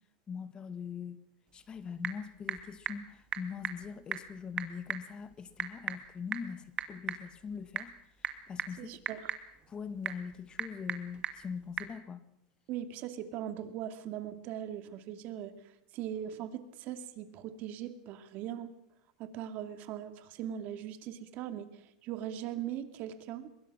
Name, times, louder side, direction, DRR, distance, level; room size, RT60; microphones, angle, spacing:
voice 1, 0.3-1.2 1.5-9.0 9.7-12.3, left 6 dB, 25° left, 1.7 m, -42 dB
Typing / Telephone, 1.5-12.0, right 8 dB, 25° right, 2.0 m, -41 dB
voice 2, 8.8-9.2 12.7-15.5 15.9-18.7 19.2-21.7 22.0-23.5, right 10 dB, 45° right, 2.4 m, -40 dB
24.0 x 21.5 x 6.1 m
supercardioid pair, 140°, 4 cm